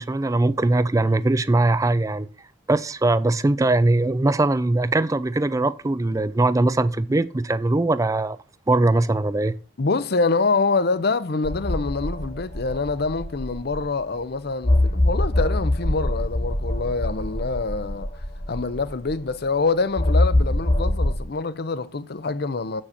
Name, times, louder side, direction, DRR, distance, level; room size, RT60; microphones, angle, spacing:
voice 1, 0.0-2.3 2.7-8.4 8.7-9.5, right 2 dB, 15° right, 0.4 m, -21 dB
voice 2, 9.8-18.1 18.5-22.8, left 3 dB, 55° left, 0.7 m, -25 dB
sound 1, 11.4-14.0 14.6-19.3 20.0-21.2, left 1 dB, 35° left, 1.4 m, -24 dB
7.9 x 6.3 x 5.8 m
head